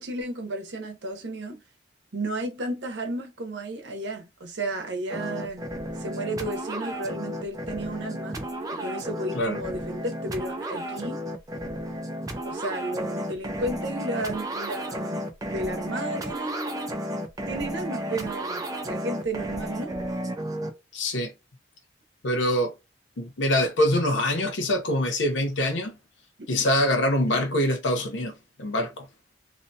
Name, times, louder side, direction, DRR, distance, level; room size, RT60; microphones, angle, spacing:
voice 1, 0.0-1.6 2.1-5.7 6.0-8.4 8.7-11.2 12.4-17.0 17.5-20.0 26.4-26.6, right 2 dB, 75° right, 0.7 m, -33 dB
sound 1, 5.1-20.7, equal, 20° right, 0.4 m, -33 dB
voice 2, 20.9-21.3 22.2-22.7 23.2-26.0 26.5-29.1, left 1 dB, 90° left, 0.6 m, -24 dB
2.7 x 2.2 x 2.6 m
head